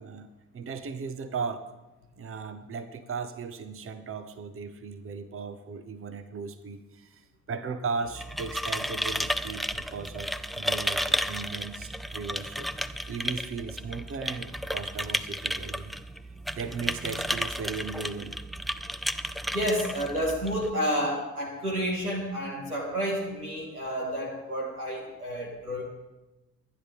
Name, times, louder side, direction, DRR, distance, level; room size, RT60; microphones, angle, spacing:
voice 1, 0.0-1.6 2.2-12.7 13.1-15.9 16.5-19.4, right 5 dB, 30° right, 10 dB, 1.0 m, -37 dB
sound 1, 8.0-20.7, equal, ahead, 0.3 m, -33 dB
voice 2, 19.5-25.8, equal, 90° right, -2 dB, 2.2 m, -30 dB
23.5 x 9.7 x 3.5 m, 1.1 s
figure-of-eight pair, 40°, 43 cm